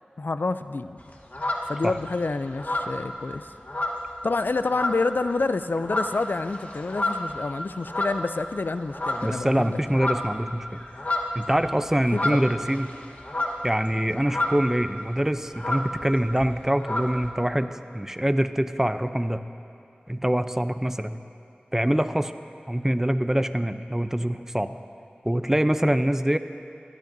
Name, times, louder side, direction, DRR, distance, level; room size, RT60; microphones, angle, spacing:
voice 1, 0.2-1.0 1.7-3.5 4.2-10.0 12.1-12.5 25.8-26.0, left 3 dB, 75° left, 11 dB, 0.4 m, -28 dB
sound 1, 1.0-2.1 2.5-4.4 4.7-5.2 5.6-8.6 8.9-9.5 9.7-14.8 15.1-15.2 15.4-17.3, left 1 dB, 50° left, 1.2 m, -30 dB
voice 2, 9.2-10.7 11.3-12.9 13.6-19.4 20.1-21.2 21.7-22.3 22.7-24.8 25.2-26.4, right 1 dB, 15° right, 10 dB, 0.5 m, -24 dB
24.0 x 12.0 x 2.7 m, 2.8 s
wide cardioid pair, 40°, 3 cm